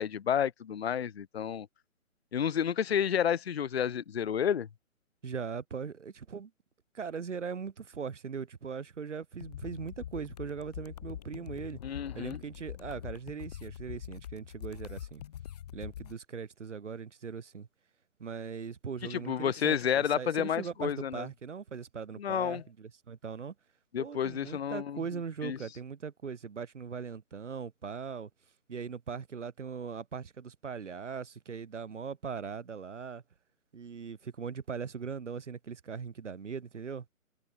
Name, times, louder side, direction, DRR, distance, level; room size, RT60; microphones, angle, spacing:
voice 1, 0.0-1.7 2.3-4.7 11.8-12.4 19.1-21.3 22.2-22.6 23.9-25.0 25.4-25.6, left 8 dB, 50° left, 0.4 m, -30 dB
voice 2, 5.2-6.5 6.9-11.8 12.1-15.2 15.7-17.7 18.2-23.5 24.0-28.3 28.7-33.2 33.7-37.1, right 6 dB, 55° right, 5.9 m, -40 dB
sound 1, 9.4-16.2, left 10 dB, 30° left, 1.7 m, -44 dB
figure-of-eight pair, 155°, 42 cm